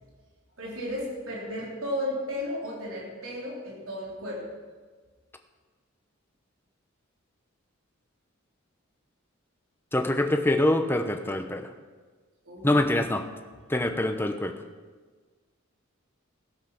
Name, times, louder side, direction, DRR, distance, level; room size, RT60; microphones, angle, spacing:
voice 1, 0.6-4.5 12.5-12.8, left 1 dB, 90° right, -4 dB, 3.5 m, -34 dB
voice 2, 9.9-11.7 12.6-13.3 13.7-14.5, left 1 dB, 10° left, 6 dB, 0.8 m, -25 dB
16.5 x 7.5 x 5.9 m, 1.4 s
head